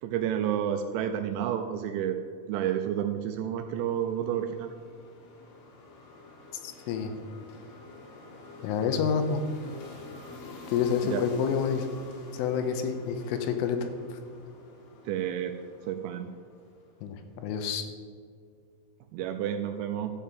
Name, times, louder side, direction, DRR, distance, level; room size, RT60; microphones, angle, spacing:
voice 1, 0.0-2.2 2.5-4.7 11.0-11.2 15.1-15.6 15.8-16.3 19.1-20.1, right 10 dB, 85° right, 6 dB, 2.7 m, -30 dB
sound 1, 2.9-17.3, left 2 dB, 75° left, 4.1 m, -49 dB
voice 2, 6.6-7.1 8.6-9.4 10.7-11.9 12.3-14.2 17.0-17.8, left 7 dB, 90° left, 7 dB, 3.4 m, -28 dB
12.5 x 7.5 x 5.2 m, 2.1 s
omnidirectional pair, 5.7 m